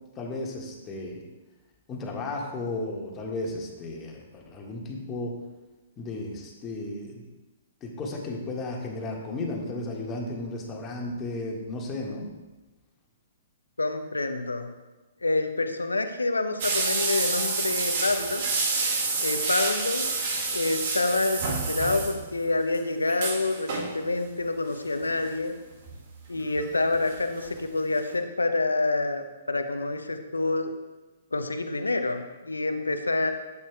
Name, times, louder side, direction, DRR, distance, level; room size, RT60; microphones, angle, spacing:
voice 1, 0.2-1.2 1.9-5.3 6.0-7.2 7.8-12.3, left 2 dB, 20° left, -1 dB, 1.9 m, -34 dB
voice 2, 13.8-14.7 15.2-18.4 19.2-20.1 20.5-25.5 26.3-30.7 31.3-33.3, left 2 dB, 80° left, 7 dB, 0.8 m, -27 dB
sound 1, 16.6-22.4 22.7-22.8 23.1-23.9 25.0-25.3 25.9-27.1 27.4-27.5 27.9-28.0, right 3 dB, 45° right, 2.2 m, -28 dB
12.5 x 8.5 x 2.4 m, 1.1 s
figure-of-eight pair, 120°, 0 cm